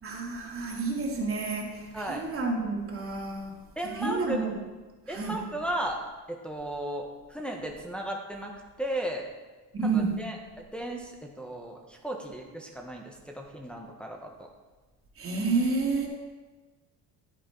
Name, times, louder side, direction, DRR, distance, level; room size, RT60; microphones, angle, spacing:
voice 1, 0.0-3.6 3.9-4.6 5.1-5.4 9.7-10.2 15.2-16.1, right 4 dB, 40° right, -2 dB, 2.8 m, -30 dB
voice 2, 1.9-2.2 3.8-4.4 5.1-6.0 6.3-8.5 8.8-9.2 9.9-14.5, right 1 dB, 5° left, 0 dB, 1.3 m, -35 dB
11.0 x 9.2 x 4.0 m, 1.3 s
cardioid pair, 105°, 35 cm